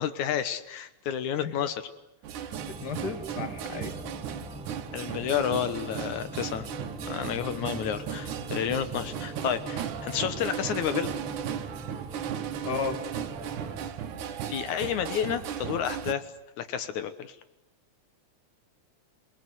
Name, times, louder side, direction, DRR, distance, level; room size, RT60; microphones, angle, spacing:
voice 1, 0.0-1.8 2.4-2.5 4.9-6.7 7.1-11.1 14.5-16.2 16.6-17.4, left 9 dB, 80° left, 11 dB, 2.6 m, -30 dB
sound 1, 2.2-16.1, right 9 dB, 85° right, 2.6 m, -36 dB
sound 2, 2.5-13.9, right 1 dB, 5° right, 1.2 m, -43 dB
voice 2, 2.7-3.9 7.5-7.8 12.6-13.0, left 5 dB, 35° left, 8 dB, 2.5 m, -34 dB
28.0 x 20.0 x 9.6 m, 0.89 s
omnidirectional pair, 3.4 m